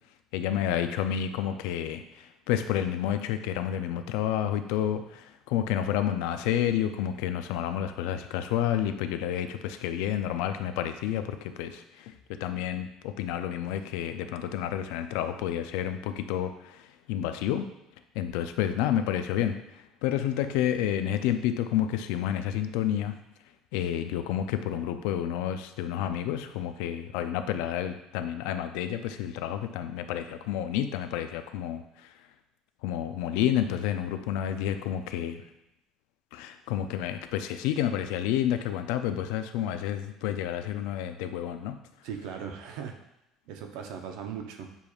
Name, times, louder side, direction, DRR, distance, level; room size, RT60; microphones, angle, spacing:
voice 1, 0.3-17.7 18.1-19.6 20.0-23.2 23.7-32.1 32.8-35.4 36.3-41.8, left 10 dB, 90° left, 9 dB, 0.3 m, -30 dB
voice 2, 42.0-43.0 43.5-44.8, right 7 dB, 70° right, 4 dB, 0.6 m, -38 dB
6.8 x 3.0 x 2.3 m, 0.87 s
cardioid pair, 170°, 0 cm